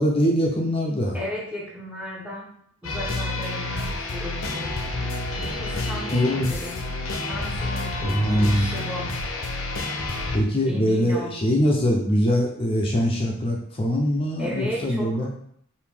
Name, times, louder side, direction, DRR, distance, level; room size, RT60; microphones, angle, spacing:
voice 1, 0.0-1.2 6.1-6.5 8.0-8.7 10.3-15.3, equal, 25° left, -1 dB, 0.5 m, -22 dB
voice 2, 1.1-2.5 2.8-4.7 5.0-6.8 7.3-9.1 10.7-11.3 14.4-15.4, left 1 dB, 5° right, -4 dB, 0.9 m, -35 dB
sound 1, 2.8-10.4, left 2 dB, 70° left, 0.7 m, -29 dB
5.0 x 2.7 x 3.4 m, 0.66 s
head